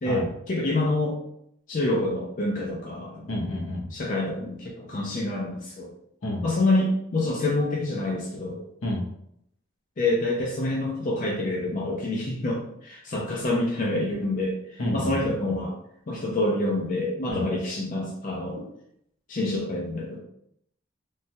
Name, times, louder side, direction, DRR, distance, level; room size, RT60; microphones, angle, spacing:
voice 1, 0.0-1.2 1.7-3.3 3.9-5.9 6.4-8.6 10.0-15.8 16.1-18.6 19.3-20.2, left 2 dB, 40° left, -3 dB, 0.4 m, -27 dB
voice 2, 3.3-3.9 6.2-6.4 8.8-9.0 14.8-15.5 17.3-17.5, left 1 dB, 75° left, -2 dB, 0.7 m, -29 dB
3.1 x 2.1 x 2.7 m, 0.73 s
head